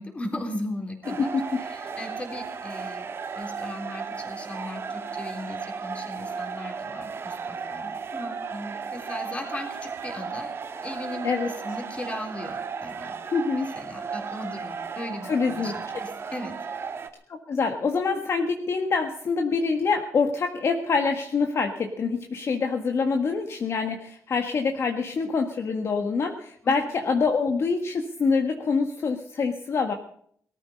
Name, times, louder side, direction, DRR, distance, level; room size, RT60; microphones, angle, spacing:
voice 1, 0.0-1.3 1.6-3.1 3.4-13.1 13.6-16.6 26.6-26.7, left 1 dB, 20° left, 3 dB, 3.8 m, -37 dB
sound 1, 1.0-17.1, right 5 dB, 45° right, 1.5 m, -35 dB
voice 2, 1.1-1.6 11.2-11.5 13.3-13.7 15.2-15.7 17.5-29.9, left 4 dB, 50° left, 4 dB, 1.7 m, -25 dB
18.5 x 13.5 x 5.4 m, 0.63 s
cardioid pair, 125°, 6 cm